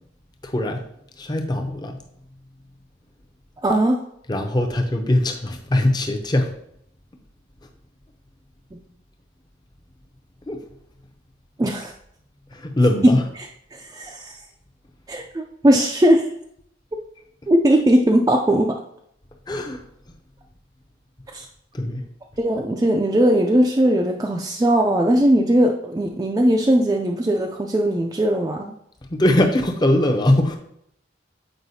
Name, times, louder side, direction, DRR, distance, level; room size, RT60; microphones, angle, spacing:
voice 1, 0.4-0.8 1.2-2.0 4.3-6.5 10.5-10.6 12.5-13.2 19.5-19.8 21.7-22.0 29.1-30.6, left 1 dB, 20° left, 4 dB, 0.6 m, -21 dB
voice 2, 3.6-4.0 8.7-8.8 11.6-11.9 13.7-14.4 15.1-16.3 17.5-18.7 21.3-21.5 22.4-28.7, right 1 dB, 20° right, 1 dB, 0.3 m, -19 dB
7.8 x 4.8 x 2.7 m, 0.73 s
head